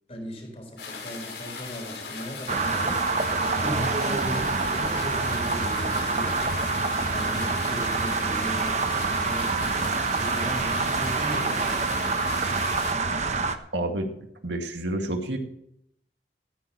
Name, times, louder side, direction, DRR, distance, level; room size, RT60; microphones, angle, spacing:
voice 1, 0.1-6.4 7.1-12.2, equal, 35° left, 2 dB, 4.4 m, -37 dB
sound 1, 0.8-12.9, left 5 dB, 90° left, 5.7 m, -38 dB
sound 2, 2.5-13.6, right 4 dB, 40° right, 1.0 m, -26 dB
voice 2, 13.7-14.1 14.4-15.4, right 1 dB, 90° right, 4 dB, 2.2 m, -29 dB
14.5 x 14.0 x 3.1 m, 0.75 s
head